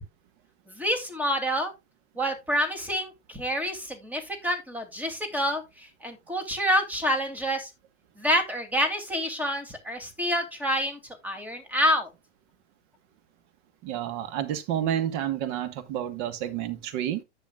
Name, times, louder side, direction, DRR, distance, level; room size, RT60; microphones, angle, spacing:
voice 1, 0.7-1.7 2.2-7.7 8.2-12.1, equal, 5° right, 2.7 m, -28 dB
voice 2, 13.8-17.2, right 10 dB, 40° right, 1.4 m, -30 dB
10.5 x 8.7 x 2.4 m
hypercardioid pair, 110°, 35 cm